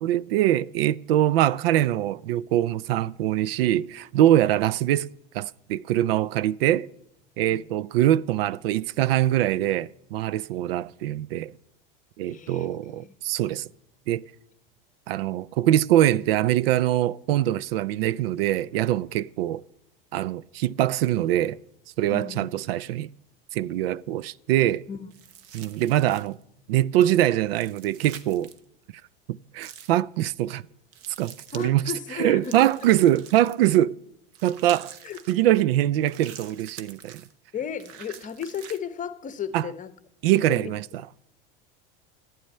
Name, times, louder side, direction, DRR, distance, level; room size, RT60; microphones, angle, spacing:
voice 1, 0.0-5.1 5.3-6.9 7.4-11.5 12.2-13.7 14.1-14.2 15.1-19.6 20.1-21.6 22.0-23.1 23.5-24.9 25.5-26.4 26.7-28.5 29.3-30.6 31.2-31.9 32.2-34.0 34.4-34.9 35.3-37.2 39.5-39.7 40.2-40.8, right 13 dB, 80° right, 0.5 m, -23 dB
voice 2, 7.5-7.8 12.3-13.1 19.2-19.3 22.1-22.6 24.9-25.1 31.5-32.7 35.0-35.2 37.5-39.9 40.5-40.8, left 7 dB, 25° left, 0.9 m, -35 dB
sound 1, 25.1-26.4 27.5-28.6 29.6-30.0 30.9-31.7 32.4-33.8 34.3-35.4 36.0-37.3 37.8-38.8, right 9 dB, 50° right, 1.0 m, -45 dB
11.5 x 9.1 x 5.5 m
hypercardioid pair, 105°, 29 cm